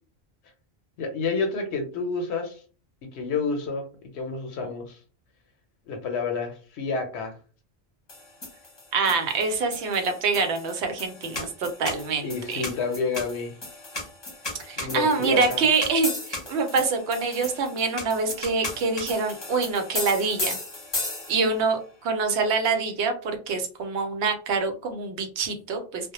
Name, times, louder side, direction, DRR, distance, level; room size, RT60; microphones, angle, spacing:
voice 1, 1.0-2.6 3.1-3.9 4.1-5.0 5.9-7.3 12.2-13.5 14.8-15.6, left 4 dB, 80° left, 4 dB, 0.8 m, -29 dB
sound 1, 8.1-21.6, left 2 dB, 25° left, 0.7 m, -35 dB
voice 2, 8.9-12.7 14.6-20.6 21.3-26.1, right 4 dB, 85° right, 6 dB, 0.9 m, -25 dB
2.1 x 2.0 x 2.8 m, 0.38 s
omnidirectional pair, 1.1 m